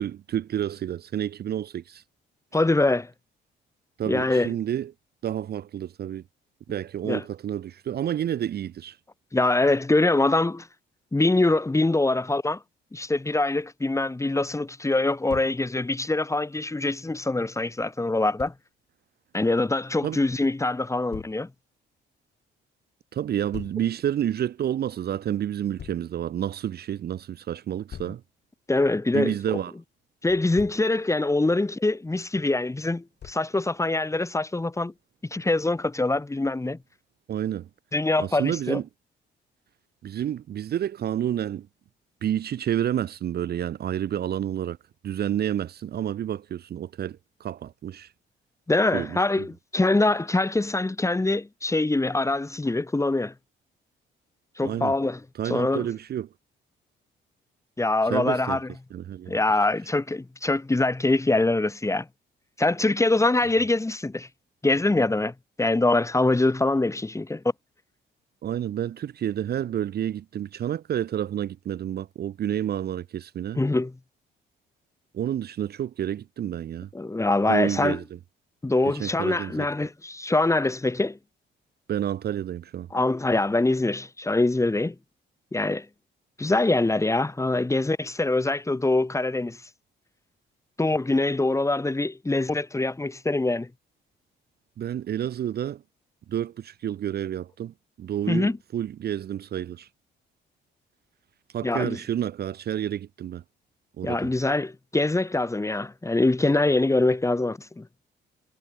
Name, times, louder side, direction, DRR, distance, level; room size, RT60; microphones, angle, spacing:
voice 1, 0.0-2.0 4.0-4.9 5.2-6.2 6.7-9.0 20.0-20.2 23.1-28.2 29.1-29.7 37.3-37.7 38.2-38.8 40.0-41.7 42.2-44.8 45.0-48.1 48.9-49.5 54.6-54.9 55.4-56.3 58.1-58.6 58.9-59.4 68.4-73.6 75.1-76.9 77.5-78.0 79.0-79.7 81.9-82.9 94.8-95.8 96.3-99.9 101.5-103.4 104.0-104.3, right 10 dB, 55° right, 0.6 m, -29 dB
voice 2, 2.5-3.1 4.1-4.5 7.0-7.2 9.3-10.7 11.1-12.6 12.9-18.5 19.3-21.5 28.7-29.4 30.2-34.9 35.3-36.8 37.9-38.8 48.7-53.3 54.6-55.9 57.8-58.7 59.3-62.1 62.6-64.3 64.6-67.4 73.5-74.0 76.9-78.0 78.6-81.2 82.9-85.0 85.5-85.9 86.4-89.6 90.8-93.7 98.3-98.6 101.6-102.0 104.0-107.9, left 2 dB, 15° left, 2.0 m, -24 dB
Thump thud, 15.3-15.6 18.4-18.6 21.1-21.4 23.5-23.9 25.8-26.1 27.9-28.2 30.3-30.9 33.2-33.5, left 9 dB, 55° left, 2.6 m, -41 dB
cardioid pair, 90°, 20 cm